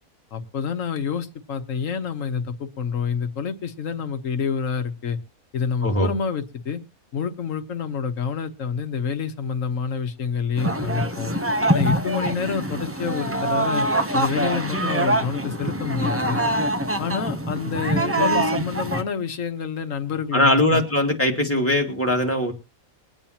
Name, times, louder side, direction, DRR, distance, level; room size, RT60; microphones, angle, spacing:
voice 1, 0.3-5.2 5.5-6.8 7.1-11.3 11.7-13.8 14.1-16.4 17.0-20.8, left 6 dB, 65° left, 9 dB, 1.4 m, -28 dB
sound 1, 10.6-19.0, right 1 dB, 15° right, 0.4 m, -24 dB
voice 2, 20.3-22.5, left 1 dB, 10° left, 1 dB, 2.1 m, -20 dB
22.5 x 8.8 x 2.9 m, 0.29 s
omnidirectional pair, 1.5 m